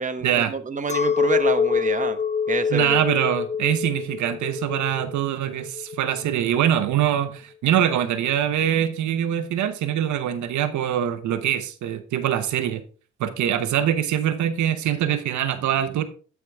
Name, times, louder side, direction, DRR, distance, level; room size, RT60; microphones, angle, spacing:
voice 1, 0.0-2.2 2.5-3.0, right 4 dB, 25° right, 1.1 m, -28 dB
Chink clink, 0.9-6.4, left 6 dB, 25° left, 0.6 m, -25 dB
voice 2, 2.7-12.8 13.2-16.0, right 10 dB, 75° right, 0.8 m, -23 dB
13.0 x 4.8 x 3.4 m
cardioid pair, 90°, 30 cm